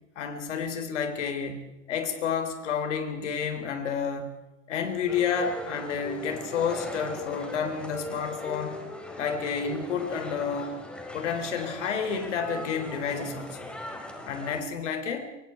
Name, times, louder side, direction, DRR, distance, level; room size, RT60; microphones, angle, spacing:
voice 1, 0.2-4.3 4.7-8.8 9.2-10.8 11.1-13.7 14.3-15.3, left 6 dB, 65° left, 7 dB, 3.9 m, -30 dB
sound 1, 5.1-14.6, left 1 dB, 5° left, 4.9 m, -39 dB
24.5 x 23.5 x 4.6 m, 0.99 s
figure-of-eight pair, 90°, 38 cm